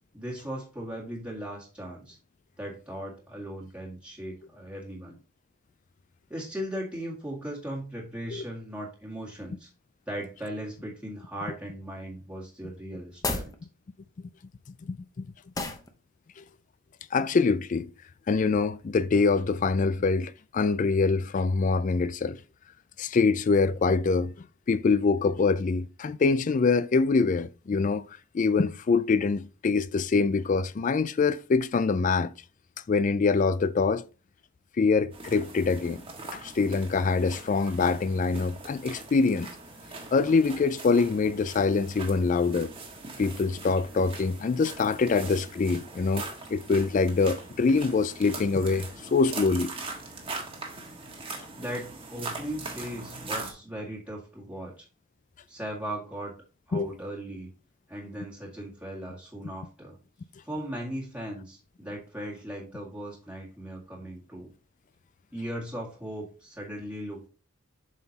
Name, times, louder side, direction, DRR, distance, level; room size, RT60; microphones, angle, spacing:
voice 1, 0.1-2.2 2.6-5.2 6.3-9.7 10.1-13.5 51.5-54.9 55.5-56.3 56.7-57.5 57.9-60.0 60.4-64.5 65.3-67.3, equal, 5° right, 1.8 m, -38 dB
sound 1, 13.1-13.6 15.5-15.9, left 3 dB, 15° left, 0.8 m, -31 dB
voice 2, 14.8-15.3 15.6-15.7 16.4-16.5 17.1-17.9 18.3-22.4 23.0-28.1 28.3-32.3 32.9-34.1 34.8-36.0 36.3-39.5 40.1-42.7 43.2-46.2 46.5-49.7 56.7-56.9, left 4 dB, 40° left, 0.3 m, -24 dB
sound 2, 35.1-53.5, right 3 dB, 25° right, 1.4 m, -41 dB
7.5 x 5.8 x 2.8 m
head